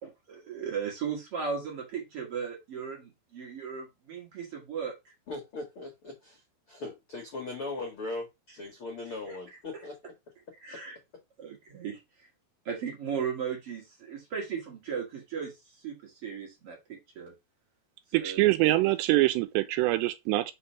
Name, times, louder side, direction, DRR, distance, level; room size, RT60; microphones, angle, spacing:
voice 1, 0.0-5.1 9.3-9.4 9.7-9.8 10.6-10.9 11.4-12.3 12.6-17.3 18.2-18.5, right 6 dB, 55° right, 1.7 m, -37 dB
voice 2, 5.3-9.9, left 2 dB, 75° left, 1.2 m, -39 dB
voice 3, 18.1-20.5, right 17 dB, 85° right, 2.7 m, -24 dB
5.7 x 4.2 x 5.5 m
omnidirectional pair, 5.1 m